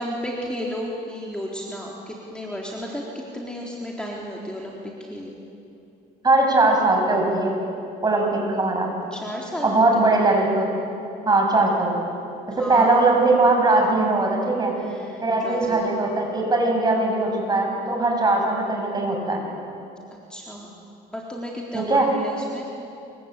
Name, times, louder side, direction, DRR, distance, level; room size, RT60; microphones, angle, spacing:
voice 1, 0.0-5.4 9.1-10.2 12.5-13.1 14.7-16.0 20.3-20.7 21.1-22.7, equal, 5° left, -3 dB, 3.8 m, -33 dB
voice 2, 6.2-7.6 8.0-8.9 9.6-10.6 11.3-12.0 12.6-14.7 15.2-19.4 21.7-22.1, right 2 dB, 25° right, 1 dB, 7.0 m, -20 dB
27.0 x 24.0 x 9.1 m, 2.7 s
cardioid pair, 110°, 17 cm